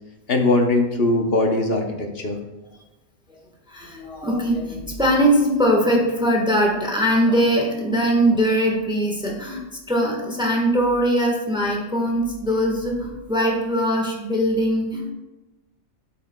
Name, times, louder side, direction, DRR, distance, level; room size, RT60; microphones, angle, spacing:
voice 1, 0.3-2.4, left 2 dB, 50° left, 3 dB, 0.9 m, -20 dB
voice 2, 3.7-9.6 9.9-15.1, equal, 5° right, -1 dB, 1.1 m, -21 dB
13.0 x 5.7 x 2.2 m, 1.0 s
omnidirectional pair, 1.5 m